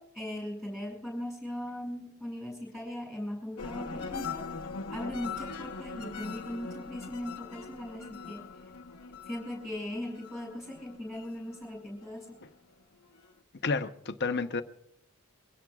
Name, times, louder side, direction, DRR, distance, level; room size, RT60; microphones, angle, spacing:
voice 1, 0.0-4.4 4.9-8.4 9.1-12.4, left 1 dB, ahead, 6.5 m, -39 dB
sound 1, 3.6-12.4 12.8-13.3, left 4 dB, 90° left, 1.0 m, -41 dB
voice 2, 13.6-14.6, left 4 dB, 50° left, 0.8 m, -30 dB
24.5 x 16.5 x 2.4 m
head